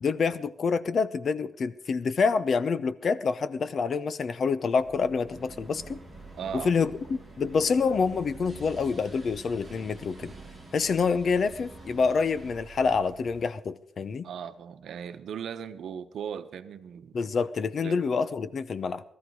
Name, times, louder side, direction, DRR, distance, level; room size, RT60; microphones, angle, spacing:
voice 1, 0.0-6.0 6.5-10.3 10.7-14.3 17.1-19.0, left 5 dB, 45° left, 14 dB, 0.7 m, -27 dB
sound 1, 4.8-13.5, right 5 dB, 35° right, 1.6 m, -49 dB
sound 2, 5.2-12.5, equal, 15° left, 5.8 m, -49 dB
voice 2, 6.4-6.7 14.2-17.2 17.8-18.0, right 8 dB, 70° right, 10 dB, 0.9 m, -38 dB
18.5 x 13.5 x 4.7 m, 0.70 s
wide cardioid pair, 140°, 0 cm